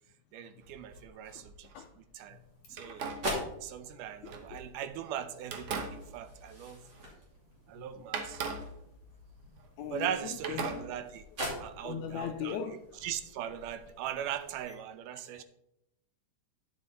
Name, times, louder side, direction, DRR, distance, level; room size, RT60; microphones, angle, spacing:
voice 1, 0.3-1.7 2.1-2.4 2.7-3.1 3.6-6.8 7.7-8.4 9.9-11.3 11.6-15.4, right 10 dB, 80° right, 2.0 m, -39 dB
sound 1, 0.6-1.8 2.7-5.0 5.4-7.4 7.6-7.7 8.1-10.1 10.4-11.4, right 4 dB, 60° right, 1.6 m, -41 dB
sound 2, 2.2-14.7, equal, 35° right, 3.0 m, -44 dB
voice 2, 9.8-10.1 10.5-10.7 11.8-12.8, left 8 dB, 85° left, 1.6 m, -37 dB
10.0 x 7.2 x 4.2 m
omnidirectional pair, 3.9 m